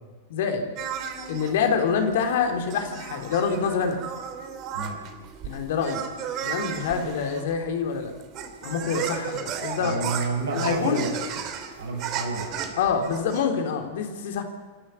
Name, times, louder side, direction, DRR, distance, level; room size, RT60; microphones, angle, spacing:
voice 1, 0.3-0.7 1.3-4.0 5.4-6.1 6.4-8.1 8.6-10.0 10.5-11.0 12.8-14.4, left 6 dB, 55° left, 5 dB, 3.5 m, -26 dB
sound 1, 0.8-13.4, right 8 dB, 40° right, 2.9 m, -35 dB
voice 2, 9.8-11.5 11.8-12.6, right 3 dB, 65° right, 1 dB, 7.7 m, -30 dB
27.0 x 12.0 x 9.8 m, 1.3 s
figure-of-eight pair, 90°, 0 cm